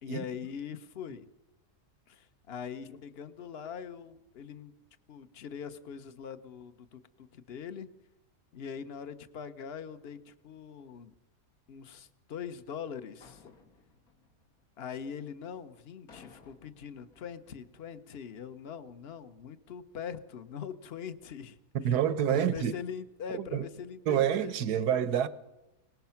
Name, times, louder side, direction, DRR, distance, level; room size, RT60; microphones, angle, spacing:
voice 1, 0.0-1.3 2.1-4.7 5.1-7.9 8.5-11.1 11.7-13.5 14.8-21.6 22.3-24.9, left 7 dB, 45° left, 1.1 m, -42 dB
sound 1, 13.2-15.2 16.1-18.0, left 4 dB, 70° left, 3.0 m, -59 dB
voice 2, 21.8-22.7 23.4-23.6 24.1-25.3, right 9 dB, 85° right, 1.5 m, -27 dB
23.5 x 19.5 x 5.9 m
omnidirectional pair, 1.7 m